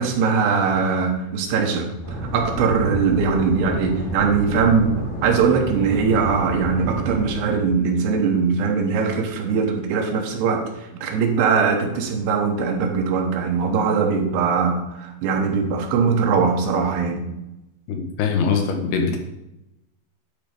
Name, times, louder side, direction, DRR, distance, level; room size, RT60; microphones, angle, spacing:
voice 1, 0.0-4.9 5.2-10.6 11.0-17.3, right 5 dB, 85° right, 3 dB, 3.1 m, -21 dB
sound 1, 2.0-7.3, right 1 dB, 60° left, 4.4 m, -30 dB
voice 2, 17.9-19.2, left 5 dB, 80° left, 4 dB, 2.9 m, -22 dB
10.5 x 4.0 x 5.0 m, 0.91 s
omnidirectional pair, 4.7 m